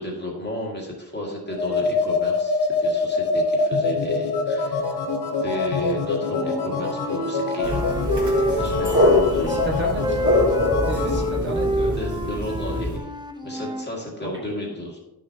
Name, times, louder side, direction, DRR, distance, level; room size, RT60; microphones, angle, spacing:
voice 1, 0.0-5.1 5.3-7.9 8.5-9.7 11.0-11.4 12.0-13.1 13.4-15.0, left 1 dB, 25° left, -2 dB, 2.1 m, -33 dB
sound 1, 1.5-11.3, left 4 dB, 80° left, 1.1 m, -25 dB
Wind instrument woodwind instrument, 6.3-9.7 10.0-13.9, right 1 dB, 10° right, 0.6 m, -28 dB
sound 2, 7.6-13.0, left 1 dB, 45° right, 2.6 m, -24 dB
voice 2, 9.4-10.2 10.9-12.0 14.2-14.3, equal, 30° right, -3 dB, 1.6 m, -31 dB
12.0 x 6.4 x 2.9 m, 0.92 s
wide cardioid pair, 160°, 39 cm